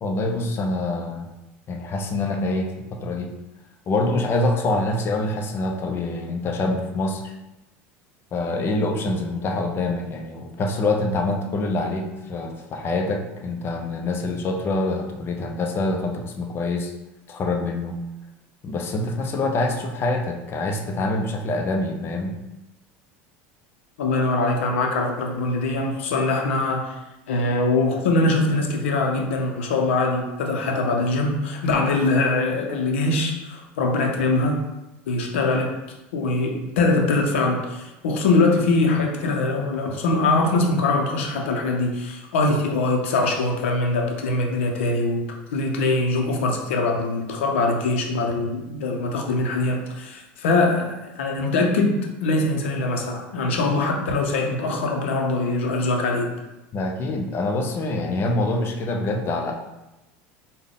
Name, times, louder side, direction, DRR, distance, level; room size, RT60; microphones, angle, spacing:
voice 1, 0.0-1.3 1.7-3.3 3.9-7.3 8.3-16.9 17.3-18.0 18.6-22.3 56.7-59.5, left 2 dB, 35° left, 3 dB, 0.6 m, -25 dB
voice 2, 24.0-27.0 27.3-34.6 35.1-35.7 36.1-52.0 52.2-56.3, left 2 dB, 85° left, 2 dB, 0.6 m, -22 dB
3.7 x 2.2 x 3.6 m, 0.99 s
supercardioid pair, 100°, 6 cm